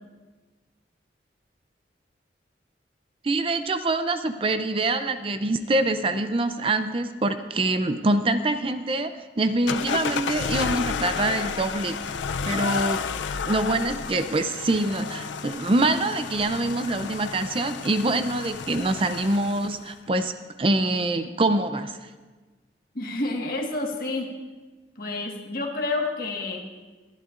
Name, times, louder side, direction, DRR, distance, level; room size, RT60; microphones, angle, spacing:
voice 1, 3.2-9.1 9.4-12.2 12.4-13.0 13.5-20.3 20.6-22.1, right 2 dB, 30° right, 9 dB, 0.5 m, -25 dB
sound 1, 9.7-19.9, left 6 dB, 90° left, 0.5 m, -31 dB
voice 2, 22.9-24.3 25.0-26.6, left 2 dB, 50° left, 1 dB, 1.6 m, -29 dB
23.0 x 11.5 x 2.5 m, 1.3 s
head